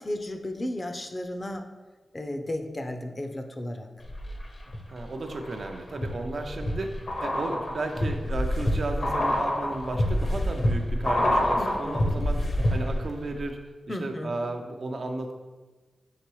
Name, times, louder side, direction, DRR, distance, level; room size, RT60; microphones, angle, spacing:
voice 1, 0.0-1.7 2.1-3.9 11.6-12.3 13.9-14.4, left 1 dB, 30° left, 6 dB, 0.5 m, -34 dB
sound 1, 4.0-4.8 5.2-13.1 13.4-13.5, left 1 dB, 55° left, 0.8 m, -27 dB
voice 2, 4.9-13.6 13.9-15.3, right 2 dB, 60° right, 4 dB, 0.5 m, -34 dB
5.7 x 3.0 x 3.1 m, 1.2 s
cardioid pair, 65°, 0 cm